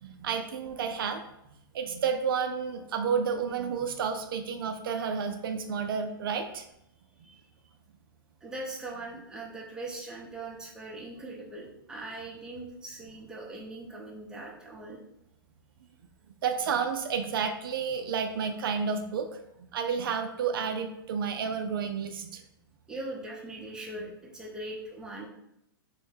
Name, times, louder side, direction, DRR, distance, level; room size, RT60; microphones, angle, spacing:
voice 1, 0.0-1.2 1.7-6.7 16.4-19.4 19.7-22.4, right 6 dB, 70° right, 6 dB, 0.4 m, -31 dB
voice 2, 8.4-15.0 22.9-25.3, right 2 dB, 5° right, -4 dB, 0.6 m, -41 dB
3.6 x 2.1 x 3.3 m, 0.80 s
hypercardioid pair, 135°, 12 cm